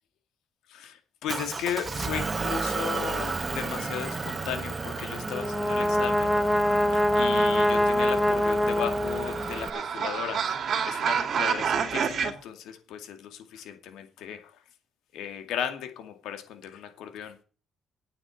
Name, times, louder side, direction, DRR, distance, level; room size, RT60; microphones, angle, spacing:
voice 1, 1.2-6.3 6.9-10.4 10.8-14.4 15.1-17.4, left 9 dB, 85° left, 7 dB, 2.4 m, -35 dB
Motor vehicle (road) / Engine, 1.3-9.7, right 4 dB, 30° right, 1.4 m, -33 dB
Brass instrument, 5.2-9.7, left 1 dB, 10° left, 2.0 m, -24 dB
sound 1, 8.4-12.3, right 7 dB, 55° right, 2.5 m, -29 dB
9.0 x 7.7 x 7.9 m, 0.38 s
cardioid pair, 90°, 0 cm